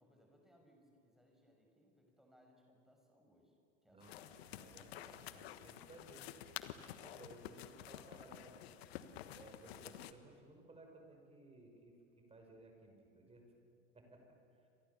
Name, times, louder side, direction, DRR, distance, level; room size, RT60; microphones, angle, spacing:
voice 1, 0.0-3.6 3.8-4.4, equal, ahead, 2 dB, 6.2 m, -69 dB
voice 2, 3.9-6.3 6.8-8.8 9.3-13.5 13.9-14.3 14.5-14.7, right 2 dB, 15° right, 2 dB, 5.9 m, -59 dB
sound 1, 4.0-10.1, left 12 dB, 60° left, 1.4 m, -51 dB
29.0 x 26.0 x 7.1 m, 2.6 s
figure-of-eight pair, 85°, 36 cm